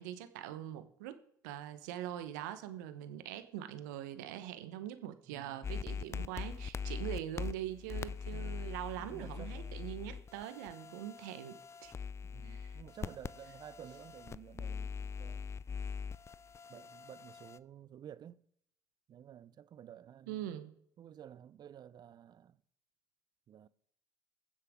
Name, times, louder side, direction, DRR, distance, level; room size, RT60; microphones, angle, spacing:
voice 1, 0.0-11.9 12.4-12.8 20.3-20.8, right 12 dB, 80° right, 0.9 m, -43 dB
voice 2, 5.3-5.6 8.3-8.7 9.0-9.9 12.2-15.6 16.7-18.4 19.1-20.5 21.0-22.6 23.5-23.7, right 10 dB, 45° right, 0.6 m, -53 dB
sound 1, 5.6-17.6, left 6 dB, 30° left, 0.4 m, -42 dB
22.0 x 7.5 x 3.6 m
hypercardioid pair, 70°, 10 cm